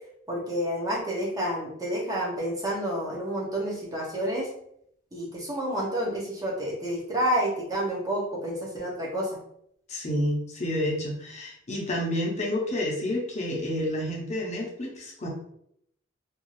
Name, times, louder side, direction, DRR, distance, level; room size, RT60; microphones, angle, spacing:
voice 1, 0.3-4.5 5.1-9.4, equal, 20° right, -3 dB, 0.7 m, -29 dB
voice 2, 9.9-15.3, left 1 dB, 35° left, -2 dB, 0.7 m, -29 dB
2.6 x 2.4 x 3.1 m, 0.71 s
head